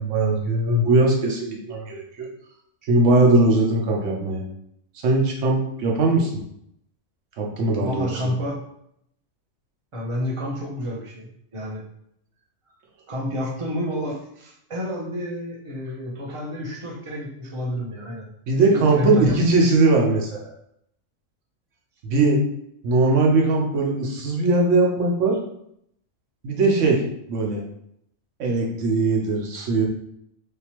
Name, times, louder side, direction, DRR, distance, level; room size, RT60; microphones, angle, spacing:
voice 1, 0.0-2.3 2.9-4.4 5.0-6.4 7.4-8.3 18.5-20.3 22.0-22.4 22.8-25.4 26.4-27.0 27.3-27.6 28.4-29.8, right 2 dB, 65° right, 0 dB, 1.1 m, -20 dB
voice 2, 7.8-8.6 9.9-11.8 13.1-18.3 18.5-19.4, equal, 30° right, -2 dB, 0.6 m, -30 dB
3.5 x 2.8 x 2.9 m, 0.74 s
omnidirectional pair, 1.4 m